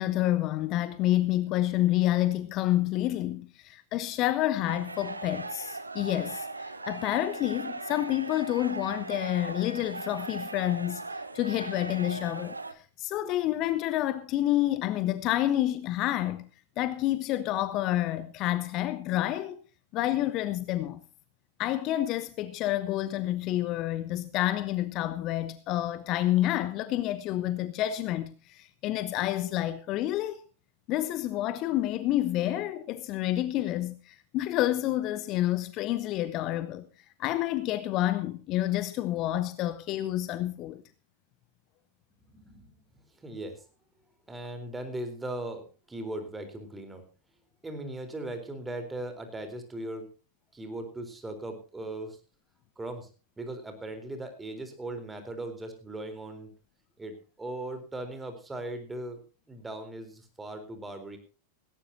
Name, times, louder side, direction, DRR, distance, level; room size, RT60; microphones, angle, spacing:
voice 1, 0.0-11.0 11.3-16.5 16.8-19.6 19.9-21.0 21.6-30.4 30.9-36.8 37.2-40.8, left 14 dB, 40° left, 1.0 m, -29 dB
sound 1, 4.7-12.7, right 3 dB, 80° right, 1.2 m, -38 dB
voice 2, 42.3-42.7 43.2-43.6 44.3-47.0 47.6-50.1 50.5-52.2 52.8-53.1 53.4-56.5 57.0-59.2 59.5-61.2, right 1 dB, 10° right, 3.9 m, -38 dB
17.5 x 17.5 x 2.8 m
figure-of-eight pair, 90°, 0 cm